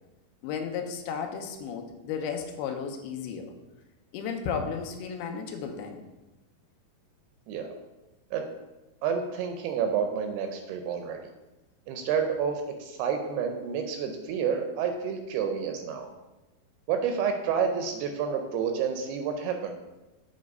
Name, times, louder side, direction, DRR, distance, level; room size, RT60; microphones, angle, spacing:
voice 1, 0.4-3.5 4.1-6.0, left 6 dB, 80° left, 4 dB, 2.5 m, -34 dB
voice 2, 7.5-7.8 8.3-8.4 9.0-11.2 11.9-16.1 16.9-19.7, right 7 dB, 80° right, 5 dB, 2.4 m, -29 dB
7.7 x 3.1 x 5.2 m, 1.1 s
omnidirectional pair, 4.7 m